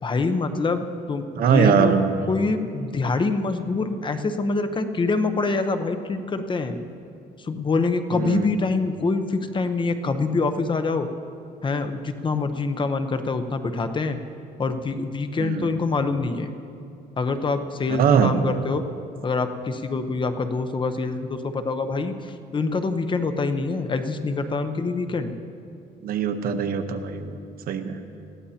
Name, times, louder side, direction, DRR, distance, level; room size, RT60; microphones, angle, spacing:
voice 1, 0.0-1.9 2.3-6.8 7.4-11.1 11.6-14.2 14.6-16.5 17.2-18.8 19.2-25.3, left 3 dB, 30° left, 8 dB, 0.9 m, -25 dB
voice 2, 1.4-2.1 8.1-8.5 15.4-15.7 17.9-18.4 26.0-27.4 27.7-28.0, right 7 dB, 60° right, 8 dB, 1.0 m, -21 dB
20.5 x 14.5 x 2.9 m, 2.5 s
cardioid pair, 110°, 17 cm